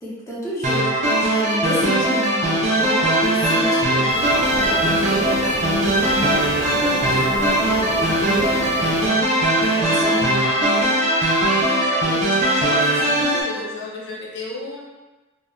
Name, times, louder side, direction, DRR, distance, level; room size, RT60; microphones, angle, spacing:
voice 1, 0.0-9.3 9.7-11.0, left 1 dB, 15° left, -7 dB, 0.6 m, -30 dB
sound 1, 0.6-13.4, right 1 dB, 35° right, 0.4 m, -20 dB
sound 2, 4.1-9.1, right 1 dB, 90° right, 0.6 m, -30 dB
voice 2, 11.9-14.8, left 2 dB, 60° left, -3 dB, 0.5 m, -33 dB
2.2 x 2.0 x 3.5 m, 1.2 s
head